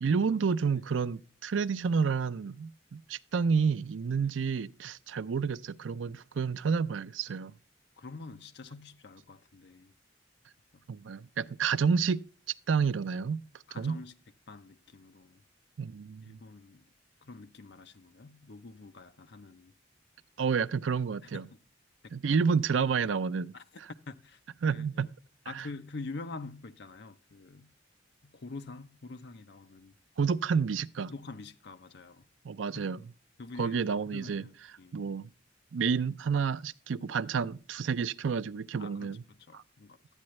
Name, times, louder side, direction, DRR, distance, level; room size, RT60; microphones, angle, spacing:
voice 1, 0.0-7.5 10.9-12.2 12.7-13.4 13.7-14.0 15.8-16.4 20.4-21.4 22.1-23.5 23.8-23.9 24.6-25.1 25.5-25.7 30.2-31.1 32.4-33.0 33.6-34.4 34.9-35.3 35.7-39.2 39.5-39.6, right 5 dB, 90° right, 0.5 m, -30 dB
voice 2, 8.0-9.9 10.7-10.9 13.7-14.1 14.5-15.4 16.2-16.8 17.2-19.7 21.2-21.6 22.2-22.3 23.5-23.6 24.1-24.4 24.7-25.1 25.5-27.7 28.2-29.9 31.1-32.3 32.7-33.0 33.4-34.5 34.8-35.0 38.8-40.0, left 3 dB, 65° left, 0.7 m, -46 dB
12.0 x 8.6 x 3.1 m
head